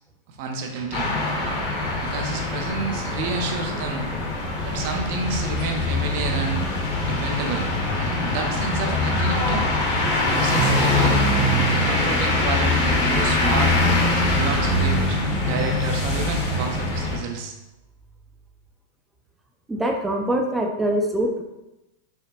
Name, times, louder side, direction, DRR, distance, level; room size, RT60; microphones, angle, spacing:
voice 1, 0.4-1.1 2.0-4.1 4.6-6.7 7.0-7.7 7.9-9.6 10.3-11.2 11.7-13.8 14.3-17.5, right 4 dB, 55° right, 3 dB, 0.6 m, -30 dB
sound 1, 0.9-17.2, left 2 dB, 45° left, 1.0 m, -23 dB
sound 2, 12.7-18.7, right 3 dB, 20° left, 0.8 m, -38 dB
voice 2, 19.7-21.4, right 1 dB, 10° right, 2 dB, 0.4 m, -23 dB
4.8 x 2.1 x 2.9 m, 0.97 s
supercardioid pair, 140°, 0 cm